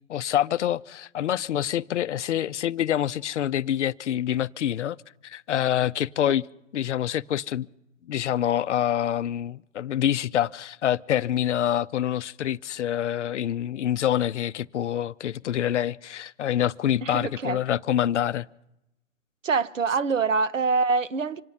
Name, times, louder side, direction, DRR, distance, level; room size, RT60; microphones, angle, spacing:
voice 1, 0.1-5.0 5.2-6.4 6.7-7.7 8.1-18.5, left 11 dB, 70° left, 0.6 m, -26 dB
voice 2, 17.0-17.6 19.4-21.4, right 4 dB, 85° right, 0.9 m, -25 dB
26.5 x 9.3 x 5.6 m
figure-of-eight pair, 120°, 37 cm